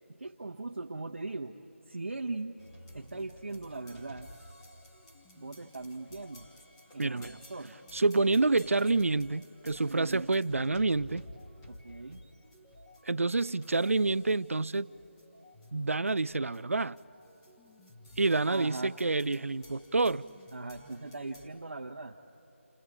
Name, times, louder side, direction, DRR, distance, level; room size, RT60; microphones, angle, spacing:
voice 1, 0.1-1.6 1.9-2.5 2.9-4.3 5.4-6.5 6.9-7.7 9.9-10.3 11.7-12.2 18.5-18.9 20.5-22.2, right 3 dB, 60° right, 1.2 m, -40 dB
sound 1, 2.6-21.5, left 1 dB, 10° left, 1.5 m, -54 dB
voice 2, 7.0-7.3 7.9-11.2 13.1-14.9 15.7-17.0 18.2-20.2, right 3 dB, 75° right, 0.5 m, -28 dB
30.0 x 29.5 x 4.9 m
figure-of-eight pair, 165°, 7 cm